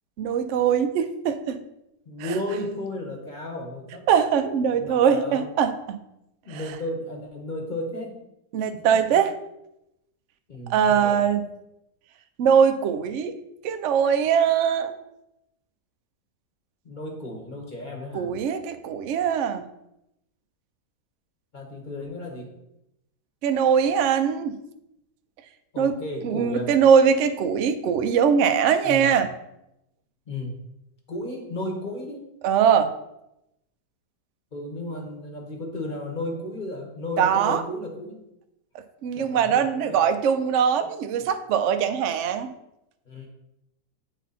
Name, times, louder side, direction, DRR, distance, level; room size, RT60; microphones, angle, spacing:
voice 1, 0.2-1.6 4.1-6.0 6.5-6.6 8.5-9.3 10.7-11.4 12.4-13.4 13.6-14.9 18.1-19.6 23.4-24.6 25.8-26.0 26.2-29.3 32.4-32.9 37.2-37.6 39.0-42.5, right 7 dB, 75° right, 8 dB, 0.6 m, -21 dB
voice 2, 2.0-4.1 4.7-5.5 6.4-8.2 8.7-9.2 10.5-11.3 16.8-18.3 21.5-22.5 25.7-26.7 28.8-29.1 30.3-30.6 31.1-32.2 34.5-38.2 39.1-40.0 40.8-40.9 43.0-43.3, left 1 dB, 30° left, 0 dB, 1.1 m, -34 dB
8.2 x 4.0 x 4.1 m, 0.86 s
omnidirectional pair, 1.8 m